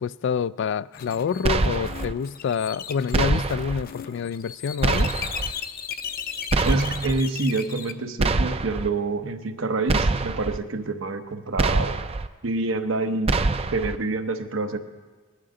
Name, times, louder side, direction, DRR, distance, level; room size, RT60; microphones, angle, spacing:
voice 1, 0.0-5.1, left 6 dB, 65° left, 19 dB, 0.3 m, -27 dB
sound 1, 0.9-7.9, left 7 dB, 50° left, 0.7 m, -36 dB
sound 2, 1.4-2.1 3.1-3.8 4.8-5.5 6.5-7.2 8.2-8.9 9.9-10.6 11.6-12.3 13.3-14.0, right 3 dB, 30° right, 0.4 m, -24 dB
voice 2, 6.6-12.0 12.4-13.3 13.7-14.8, right 3 dB, 80° right, 7 dB, 0.9 m, -27 dB
19.5 x 12.5 x 3.8 m, 1.4 s
head